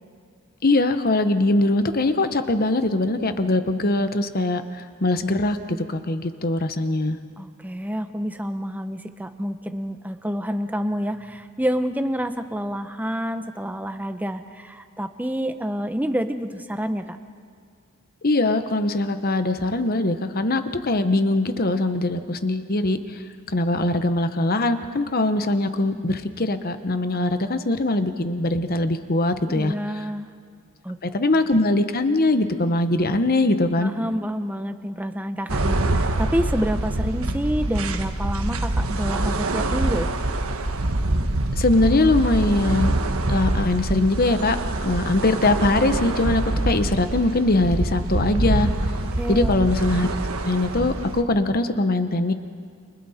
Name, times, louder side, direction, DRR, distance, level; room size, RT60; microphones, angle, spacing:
voice 1, 0.6-7.2 18.2-23.2 23.5-30.0 31.0-33.9 41.6-42.9 43.3-44.6 44.8-48.7 49.3-50.1 50.4-52.3, left 2 dB, 45° left, 9 dB, 1.1 m, -22 dB
voice 2, 7.4-17.2 29.5-30.3 30.8-31.3 33.8-40.1 48.9-49.6, equal, 10° right, 8 dB, 0.9 m, -28 dB
sound 1, 35.5-51.2, right 2 dB, 85° right, 1.3 m, -25 dB
29.5 x 28.0 x 4.3 m, 2.3 s
head